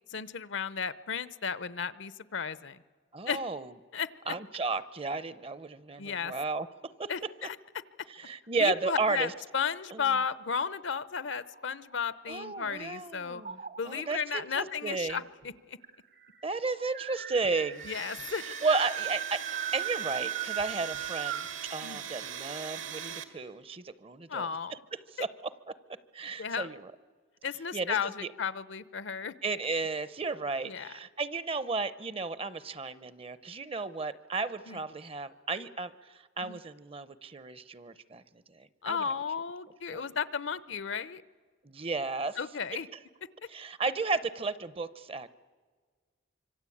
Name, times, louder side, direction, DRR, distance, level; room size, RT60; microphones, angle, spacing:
voice 1, 0.1-2.8 3.3-3.4 3.9-4.3 6.0-6.3 7.1-7.6 8.6-13.4 13.8-15.8 17.9-18.4 21.8-22.1 24.3-24.8 26.4-26.7 27.4-29.3 30.6-30.9 34.7-34.8 36.4-36.6 38.8-41.2 42.4-42.9, left 6 dB, 65° left, 17 dB, 0.7 m, -34 dB
voice 2, 3.1-3.7 4.3-6.7 7.0-7.1 8.1-9.3 9.9-10.0 12.3-13.6 13.9-15.2 16.4-17.9 18.4-19.4 19.7-24.5 24.9-25.7 26.1-26.9 27.7-28.3 29.4-38.2 38.5-39.1 39.9-40.0 41.6-42.4 43.5-45.3, right 4 dB, 30° right, 16 dB, 0.7 m, -33 dB
sound 1, 11.4-12.9 13.4-14.1 15.1-15.2 15.4-15.5 15.8-21.6, right 10 dB, 50° right, 1.1 m, -38 dB
Domestic sounds home sounds, 17.7-23.2, right 8 dB, 75° right, 2.0 m, -41 dB
25.5 x 24.5 x 8.6 m, 1.5 s
head